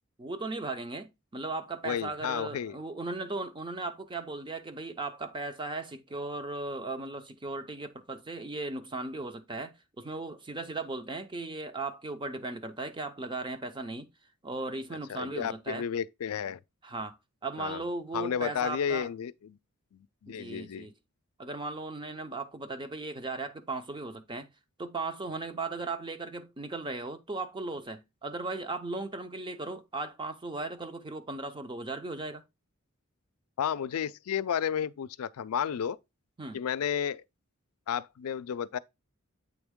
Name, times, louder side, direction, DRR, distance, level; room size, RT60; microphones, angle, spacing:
voice 1, 0.2-14.1 14.4-15.9 16.8-17.2 17.4-19.1 20.3-20.9 21.4-24.5 24.8-32.4 36.4-36.6, right 3 dB, 20° right, 0.6 m, -37 dB
voice 2, 1.8-2.8 15.1-16.6 17.6-17.8 18.1-19.6 19.9-20.9 33.6-36.0 36.5-37.2 37.9-38.8, left 8 dB, 90° left, 0.4 m, -32 dB
8.2 x 3.5 x 3.6 m
head